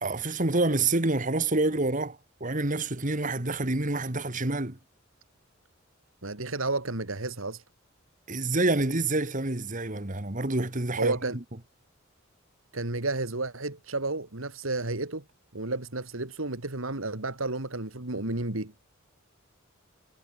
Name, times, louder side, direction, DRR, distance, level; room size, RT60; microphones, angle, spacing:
voice 1, 0.0-4.8 8.3-11.1, right 2 dB, 40° right, 2.1 m, -27 dB
voice 2, 6.2-7.6 11.0-11.4 12.7-15.2 15.5-18.7, right 2 dB, 85° right, 2.7 m, -31 dB
head